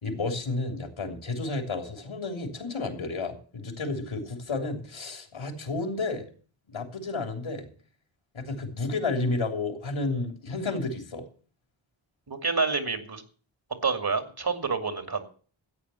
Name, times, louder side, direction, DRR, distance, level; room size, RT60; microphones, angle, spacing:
voice 1, 0.0-6.2 6.7-7.7 8.3-11.2, left 3 dB, 85° left, 5 dB, 3.4 m, -31 dB
voice 2, 12.3-13.2 13.8-15.2, right 4 dB, 50° right, 7 dB, 2.6 m, -28 dB
14.0 x 8.9 x 7.0 m, 0.42 s
wide cardioid pair, 70°, 48 cm